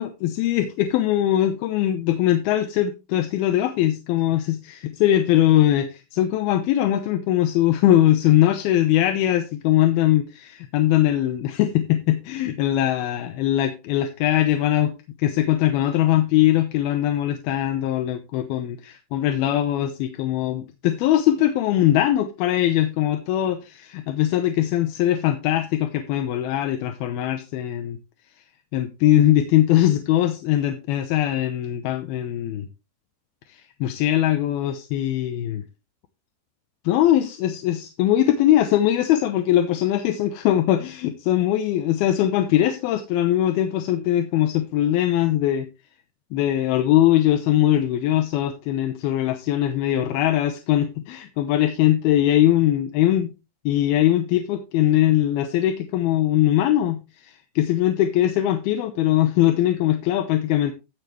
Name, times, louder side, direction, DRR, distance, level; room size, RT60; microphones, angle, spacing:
voice 1, 0.0-28.0 28.7-32.7 33.5-35.6 36.8-45.7 46.3-53.3 53.7-60.7, left 12 dB, 75° left, 7 dB, 2.5 m, -21 dB
14.5 x 7.2 x 3.1 m, 0.28 s
omnidirectional pair, 4.9 m